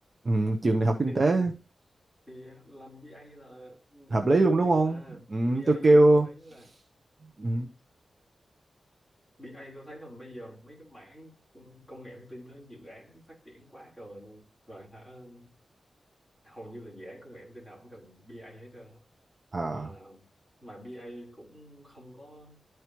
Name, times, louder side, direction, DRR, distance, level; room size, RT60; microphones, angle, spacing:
voice 1, 0.2-1.5 4.1-5.0 5.3-6.3 7.4-7.7 19.5-19.9, right 2 dB, 35° right, 0.7 m, -22 dB
voice 2, 1.1-1.5 2.3-5.3 5.5-6.7 9.4-15.5 16.4-19.0 19.7-20.3 20.6-22.6, equal, ahead, 3.9 m, -47 dB
13.0 x 4.7 x 3.0 m
wide cardioid pair, 160°, 0 cm